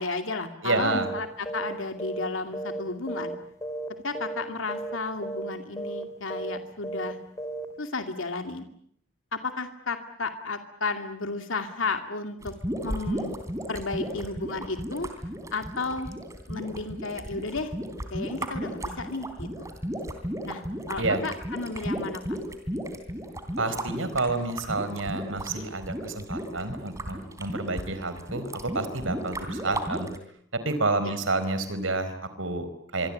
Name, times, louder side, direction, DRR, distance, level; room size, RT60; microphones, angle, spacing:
voice 1, 0.0-3.4 4.0-7.2 7.8-8.7 9.3-12.5 12.8-13.4 13.7-15.1 15.5-16.1 16.5-17.7 18.1-19.7 20.4-20.6 20.9-22.2 31.0-31.2, left 3 dB, 85° left, 6 dB, 2.5 m, -33 dB
voice 2, 0.6-1.1 21.0-21.2 23.6-30.1 30.5-33.1, right 2 dB, 80° right, 11 dB, 4.4 m, -29 dB
sound 1, 0.9-1.2 1.5-1.7 2.0-3.4 3.6-3.9 4.1-4.4 4.7-5.0 5.2-5.5 5.8-6.0 6.3-6.6 6.8-7.1 7.4-7.7, right 2 dB, 15° left, 3.3 m, -34 dB
sound 2, 12.4-30.2, equal, 15° right, 3.5 m, -34 dB
26.0 x 23.5 x 8.6 m, 0.67 s
head